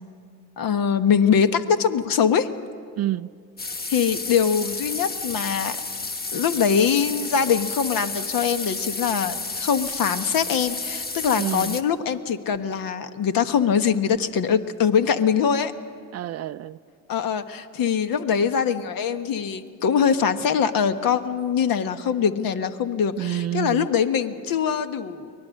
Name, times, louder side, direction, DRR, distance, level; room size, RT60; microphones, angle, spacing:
voice 1, 0.6-2.5 3.9-5.8 6.3-15.7 17.1-25.3, left 7 dB, 50° left, 10 dB, 1.3 m, -23 dB
voice 2, 3.0-3.3 11.4-11.8 16.1-16.8 23.2-23.9, right 13 dB, 40° right, 15 dB, 0.4 m, -28 dB
sound 1, 3.6-11.8, left 3 dB, 20° left, 1.3 m, -31 dB
24.0 x 19.0 x 6.5 m, 2.3 s
hypercardioid pair, 70°, 43 cm